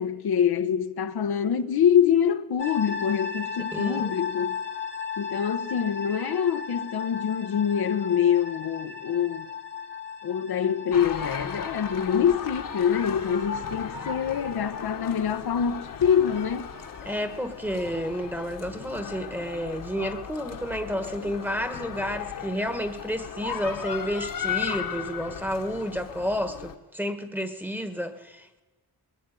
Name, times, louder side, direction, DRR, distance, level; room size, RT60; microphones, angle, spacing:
voice 1, 0.0-4.6 5.2-9.5 10.2-16.7, left 8 dB, 70° left, 1.3 m, -25 dB
sound 1, 2.6-17.6, left 6 dB, 30° left, 1.2 m, -37 dB
voice 2, 3.7-4.1 17.0-28.6, equal, 5° right, 1.4 m, -31 dB
sound 2, 10.9-26.7, left 7 dB, 55° left, 1.7 m, -36 dB
21.0 x 15.0 x 9.3 m
wide cardioid pair, 170°, 39 cm